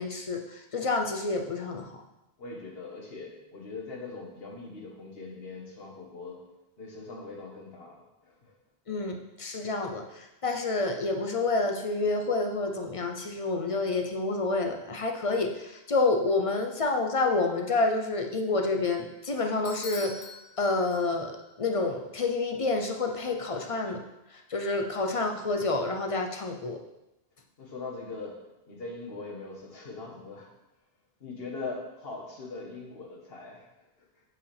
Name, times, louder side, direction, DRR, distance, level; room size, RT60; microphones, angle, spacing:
voice 1, 0.0-1.9 8.9-20.2 20.6-24.0 24.5-26.8, left 3 dB, 40° left, 3 dB, 0.6 m, -28 dB
voice 2, 2.4-6.4 6.8-8.6 27.6-30.5 31.2-33.7 34.0-34.1, left 3 dB, 60° left, -1 dB, 1.5 m, -41 dB
Bell / Doorbell, 19.6-21.5, left 3 dB, 90° left, 1.1 m, -44 dB
7.8 x 4.8 x 3.4 m, 0.93 s
omnidirectional pair, 1.1 m